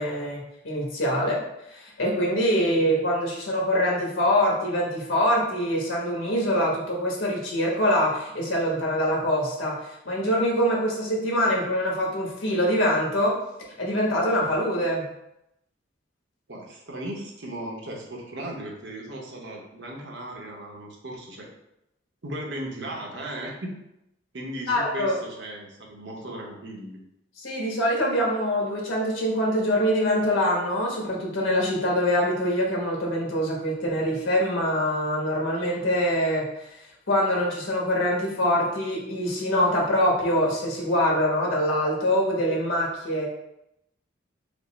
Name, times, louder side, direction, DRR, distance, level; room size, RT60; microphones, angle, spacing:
voice 1, 0.0-1.4 1.7-9.8 10.0-13.4 13.8-15.1 24.7-25.1 27.4-36.7 37.1-43.3, equal, 85° left, -2 dB, 1.3 m, -24 dB
voice 2, 16.5-21.5 22.2-23.7 24.3-27.0, right 1 dB, 60° right, 0 dB, 0.9 m, -36 dB
5.2 x 2.1 x 4.0 m, 0.85 s
head